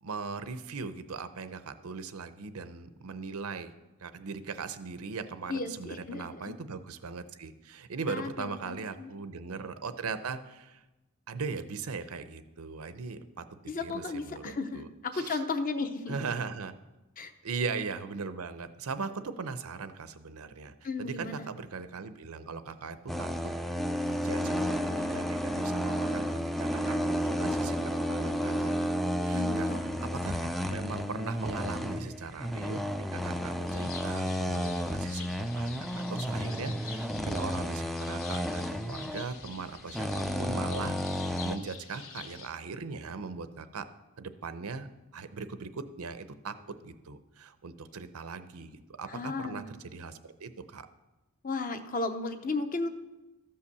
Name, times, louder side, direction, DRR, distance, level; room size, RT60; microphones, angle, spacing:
voice 1, 0.0-3.7 4.0-10.8 11.3-13.4 13.8-15.4 16.1-16.7 17.4-23.5 24.0-29.7 30.1-32.8 33.1-41.0 41.3-43.9 44.2-44.9 45.1-46.5 46.8-50.9, right 4 dB, 80° right, 11 dB, 0.7 m, -39 dB
voice 2, 5.5-6.5 8.1-9.1 13.7-16.2 17.2-17.3 20.8-21.5 29.3-29.9 49.1-49.7 51.4-52.9, left 3 dB, 40° left, 8 dB, 0.8 m, -34 dB
sound 1, 23.1-41.6, equal, ahead, 0.4 m, -32 dB
sound 2, 33.7-42.5, left 7 dB, 70° left, 1.0 m, -47 dB
13.5 x 5.6 x 6.8 m, 1.0 s
head